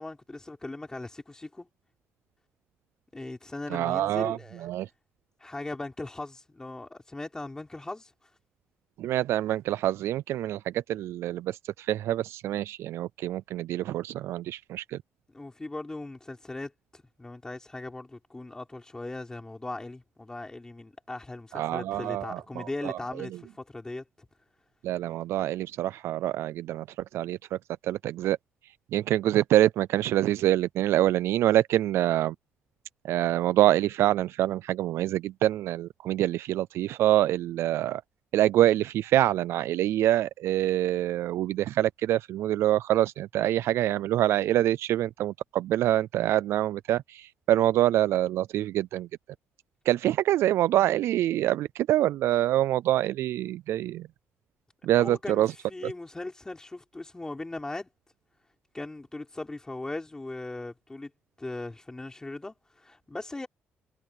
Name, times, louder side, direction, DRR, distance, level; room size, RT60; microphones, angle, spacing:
voice 1, 0.0-1.7 3.1-4.7 5.4-8.1 15.3-24.3 55.0-57.9 58.7-61.1 61.4-63.5, left 2 dB, 15° left, 5.3 m, -39 dB
voice 2, 3.7-4.9 9.0-15.0 21.5-23.0 24.8-26.9 27.1-27.6 27.8-28.4 28.9-32.3 33.0-38.0 38.3-49.1 49.9-54.1 54.8-55.5, right 13 dB, 80° right, 0.3 m, -25 dB
cardioid pair, 115°, 4 cm